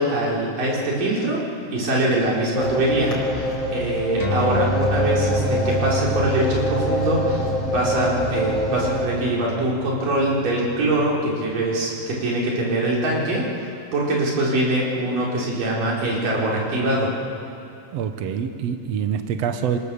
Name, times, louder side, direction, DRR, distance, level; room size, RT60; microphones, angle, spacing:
voice 1, 0.0-1.4 1.7-17.1, right 1 dB, 80° right, -4 dB, 5.9 m, -23 dB
sound 1, 2.5-9.1, left 1 dB, 40° left, 4.5 m, -25 dB
sound 2, 4.2-11.0, right 1 dB, 10° left, 3.9 m, -29 dB
voice 2, 17.9-19.8, right 8 dB, 65° right, 7 dB, 2.0 m, -25 dB
26.5 x 26.0 x 7.0 m, 2.6 s
omnidirectional pair, 3.8 m